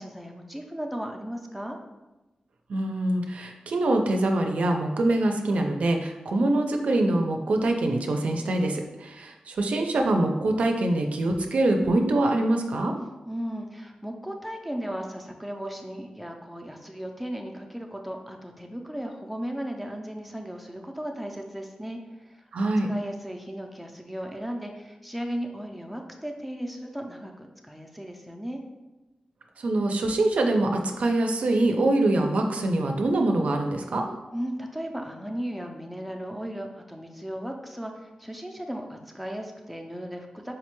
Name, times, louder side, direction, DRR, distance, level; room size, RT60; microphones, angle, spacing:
voice 1, 0.0-1.8 13.3-22.5 22.9-28.6 34.3-40.5, equal, ahead, 2 dB, 0.3 m, -36 dB
voice 2, 2.7-12.9 22.5-22.9 29.6-34.1, right 2 dB, 75° right, 3 dB, 0.4 m, -24 dB
4.8 x 2.2 x 2.9 m, 1.1 s
wide cardioid pair, 135°, 2 cm